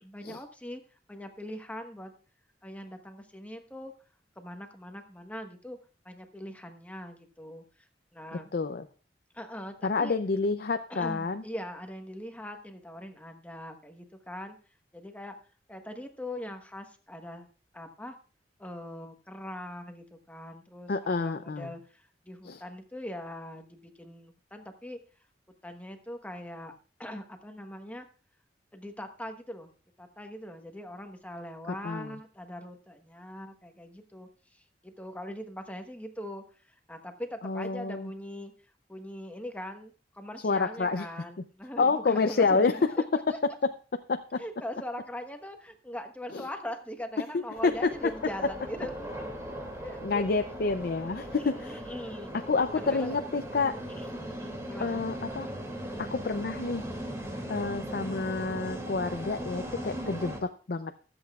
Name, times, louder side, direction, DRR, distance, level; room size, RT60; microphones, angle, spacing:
voice 1, 0.0-0.8 1.1-2.1 2.6-3.9 4.4-5.8 6.0-7.9 8.1-8.5 9.3-10.2 10.9-14.6 14.9-15.4 15.7-17.5 17.7-18.1 18.6-25.0 25.6-26.7 27.0-28.1 28.7-29.7 30.0-38.5 38.9-42.9 43.3-43.4 44.4-49.1 49.8-50.5 51.6-52.3 52.7-53.2 54.0-55.0 57.5-57.8, equal, 10° left, 5 dB, 1.2 m, -41 dB
voice 2, 8.5-8.9 9.8-11.4 20.9-21.7 22.4-22.6 31.7-32.2 37.4-38.1 40.4-41.1 41.8-42.7 44.1-44.4 46.3-46.4 47.3-48.1 50.0-51.8 52.3-53.8 54.8-55.5 56.0-56.8 57.5-61.0, left 4 dB, 60° left, 8 dB, 0.5 m, -29 dB
sound 1, 47.5-60.4, right 1 dB, 20° right, 2.5 m, -39 dB
23.5 x 8.0 x 2.4 m, 0.38 s
head